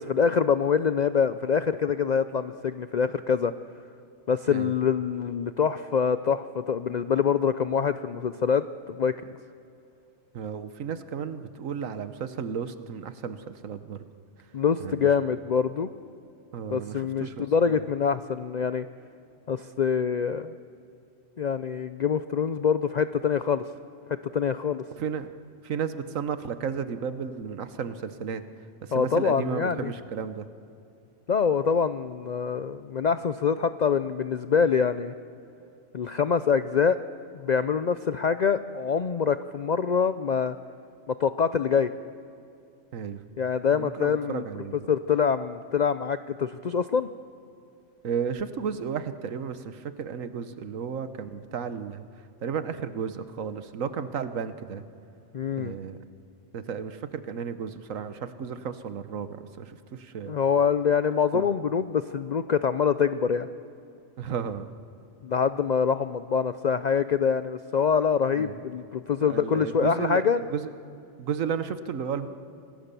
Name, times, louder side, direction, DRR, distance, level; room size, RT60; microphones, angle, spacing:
voice 1, 0.0-3.5 4.3-9.1 14.5-15.9 16.7-18.9 19.5-20.5 21.4-23.6 24.3-24.8 28.9-29.9 31.3-35.1 35.9-37.0 37.3-40.5 41.1-41.9 43.4-44.4 44.9-47.1 55.3-55.7 60.3-63.5 65.2-70.4, left 6 dB, 50° left, 12 dB, 0.5 m, -25 dB
voice 2, 10.3-14.0 14.8-15.1 16.5-17.8 25.0-25.3 25.6-28.4 28.8-30.5 42.9-43.2 43.7-44.9 48.0-52.0 52.4-54.8 55.6-56.0 56.5-60.3 61.3-61.5 64.2-64.7 68.3-68.6 69.2-70.2 70.5-70.7 71.2-72.3, right 7 dB, 90° right, 11 dB, 1.4 m, -33 dB
26.0 x 19.0 x 6.9 m, 2.6 s
omnidirectional pair, 1.3 m